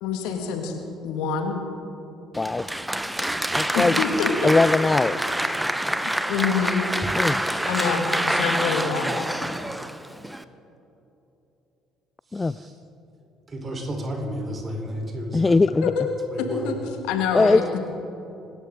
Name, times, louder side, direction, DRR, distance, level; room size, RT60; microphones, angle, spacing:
voice 1, 0.0-1.6 3.7-4.5 6.0-6.9 7.7-9.1 15.8-16.1 16.4-17.7, left 5 dB, 70° left, 4 dB, 1.9 m, -26 dB
Applause, 2.3-10.4, right 1 dB, 5° right, 0.9 m, -26 dB
voice 2, 3.5-3.9 4.4-5.2 7.1-7.4 12.3-12.5 15.3-15.9 17.3-17.8, left 3 dB, 20° left, 15 dB, 0.3 m, -20 dB
voice 3, 12.3-12.7 13.5-15.6 16.3-16.7, equal, 35° right, 2 dB, 4.1 m, -32 dB
26.5 x 14.0 x 3.8 m, 2.9 s
hypercardioid pair, 55°, 0 cm